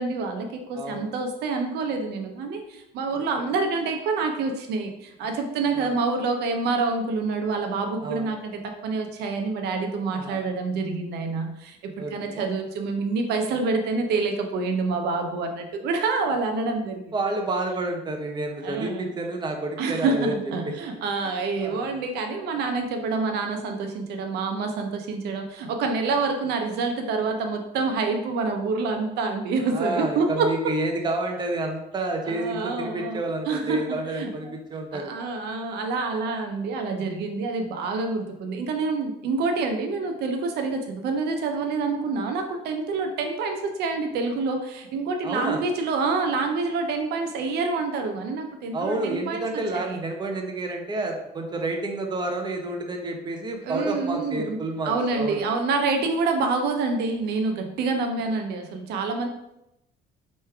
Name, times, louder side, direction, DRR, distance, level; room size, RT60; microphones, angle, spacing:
voice 1, 0.0-17.0 18.6-19.1 19.8-30.7 32.2-33.9 34.1-34.3 34.9-50.0 53.6-59.3, right 4 dB, 75° right, 4 dB, 0.6 m, -27 dB
voice 2, 0.7-1.1 3.1-3.2 5.7-6.0 8.0-8.3 10.1-10.4 12.0-12.4 17.1-20.4 20.6-20.7 21.6-22.0 29.7-35.1 45.2-45.6 48.7-55.4, right 2 dB, 25° right, 2 dB, 0.8 m, -30 dB
3.3 x 3.2 x 4.6 m, 0.85 s
cardioid pair, 110°, 17 cm